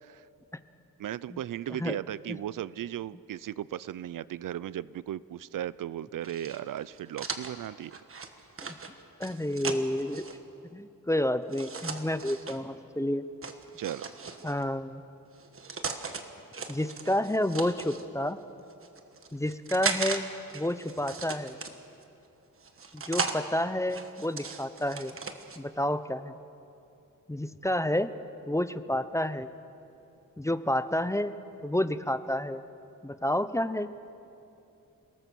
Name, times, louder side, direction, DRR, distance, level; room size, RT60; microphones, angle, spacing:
voice 1, 1.0-7.9 13.8-14.1, right 11 dB, 65° right, 19 dB, 0.5 m, -36 dB
sound 1, 6.2-10.4 11.5-12.6 13.4-14.6 15.3-16.2 16.5-18.0 18.7-20.2 20.5-22.0 22.6-23.4 23.9-25.6, right 5 dB, 40° right, 1.4 m, -37 dB
voice 2, 9.2-10.2 10.7-13.2 14.4-15.0 16.7-18.4 19.3-20.2 20.5-21.6 22.9-25.2 25.6-26.3 27.3-28.1 28.5-29.5 30.4-31.3 31.6-32.6 33.0-33.9, left 1 dB, 10° left, 12 dB, 0.5 m, -29 dB
28.5 x 18.5 x 7.0 m, 2.8 s
wide cardioid pair, 155°, 34 cm